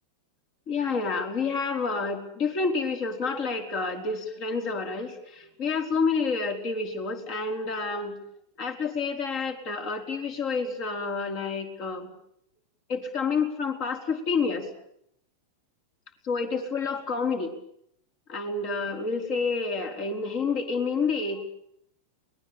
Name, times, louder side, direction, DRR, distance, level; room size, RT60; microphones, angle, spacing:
voice 1, 0.7-8.1 8.6-12.1 12.9-14.6 16.2-17.5 18.3-21.4, left 4 dB, 40° left, 5 dB, 4.9 m, -29 dB
24.5 x 19.5 x 9.0 m, 0.72 s
figure-of-eight pair, 90°, 0 cm